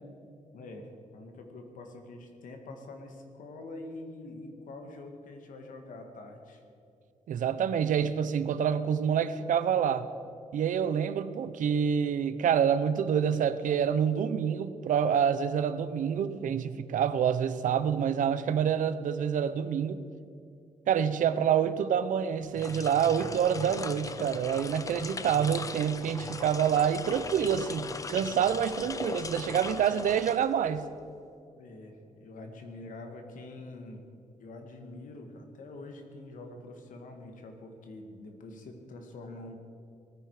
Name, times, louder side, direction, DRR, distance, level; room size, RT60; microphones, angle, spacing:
voice 1, 0.5-6.6 31.6-34.0 34.4-39.5, left 2 dB, 85° left, 4 dB, 2.1 m, -45 dB
voice 2, 7.3-10.1 10.5-20.0 20.9-30.9, right 8 dB, 85° right, 13 dB, 0.8 m, -27 dB
sound 1, 22.4-30.9, left 4 dB, 25° left, 0.5 m, -39 dB
19.5 x 14.5 x 5.0 m, 2.5 s
wide cardioid pair, 170°, 13 cm